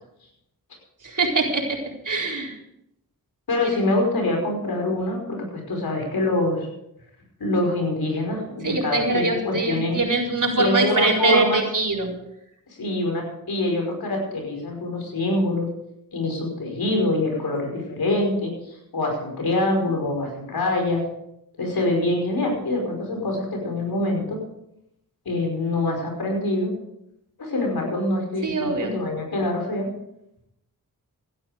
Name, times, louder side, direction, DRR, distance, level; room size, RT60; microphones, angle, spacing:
voice 1, 1.0-1.8 2.0-2.6 3.6-3.7 8.6-12.1 28.4-28.9, right 3 dB, 55° right, 0 dB, 4.3 m, -23 dB
voice 2, 3.5-6.7 7.4-10.0 10.6-11.6 12.8-15.7 16.1-21.0 21.6-24.4 25.3-26.7 27.4-29.9, left 2 dB, 75° left, 1 dB, 5.2 m, -25 dB
16.0 x 11.5 x 5.0 m, 0.80 s
cardioid pair, 40°, 37 cm